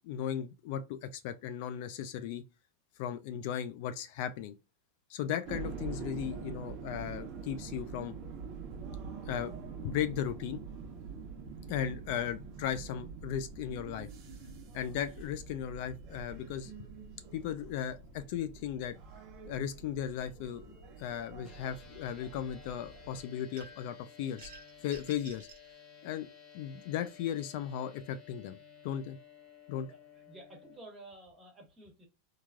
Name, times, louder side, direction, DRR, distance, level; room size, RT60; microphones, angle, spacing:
voice 1, 0.0-2.4 3.0-4.5 5.1-8.1 9.3-9.5 9.8-10.6 11.7-14.1 14.7-16.7 17.3-19.0 19.4-20.7 21.0-24.5 24.8-25.5 26.0-26.3 26.5-28.6 28.8-29.2 29.7-29.9, left 9 dB, 60° left, 0.3 m, -36 dB
sound 1, 5.5-23.2, right 5 dB, 45° right, 0.8 m, -45 dB
sound 2, 21.4-30.8, left 7 dB, 15° left, 1.0 m, -55 dB
sound 3, 23.6-24.0 24.4-25.7, right 4 dB, 65° right, 1.1 m, -52 dB
voice 2, 30.3-32.1, right 2 dB, 15° right, 1.3 m, -52 dB
3.1 x 2.4 x 2.3 m
supercardioid pair, 135°, 0 cm